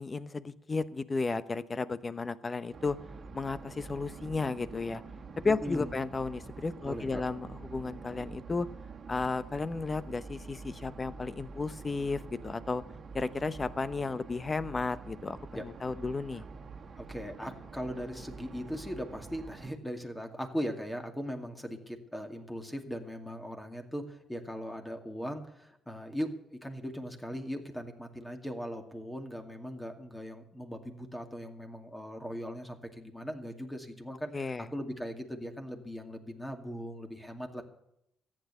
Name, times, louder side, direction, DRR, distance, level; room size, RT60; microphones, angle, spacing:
voice 1, 0.0-3.0 3.3-5.0 5.4-8.7 9.1-12.8 13.1-16.4 34.3-34.7, left 4 dB, 30° left, 14 dB, 0.9 m, -33 dB
sound 1, 2.7-19.8, right 4 dB, 50° right, 1.6 m, -47 dB
voice 2, 5.4-6.0 6.9-7.2 15.5-15.6 17.0-37.6, equal, 10° left, 5 dB, 2.3 m, -39 dB
14.5 x 9.1 x 8.3 m, 0.79 s
cardioid pair, 90°, 0 cm